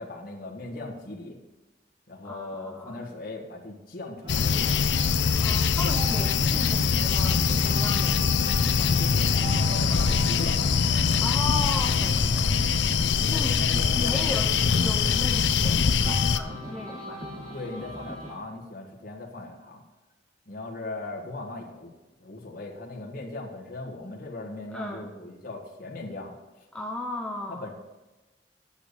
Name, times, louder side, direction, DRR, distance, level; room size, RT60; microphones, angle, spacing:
voice 1, 0.0-1.4 2.1-4.6 5.6-6.3 8.8-10.6 13.2-14.6 17.5-19.8 20.5-21.9 22.2-26.7 27.5-27.7, left 2 dB, 50° left, -2 dB, 1.6 m, -38 dB
voice 2, 2.2-3.0 5.3-8.2 9.9-10.1 11.2-12.6 13.3-13.6 13.9-17.2 24.7-25.1 26.7-27.7, left 1 dB, 5° left, 1 dB, 0.7 m, -36 dB
sound 1, 4.2-18.3, equal, 25° right, 2.1 m, -39 dB
sound 2, 4.3-16.4, left 6 dB, 80° left, 0.6 m, -23 dB
9.0 x 7.0 x 6.8 m, 1.1 s
head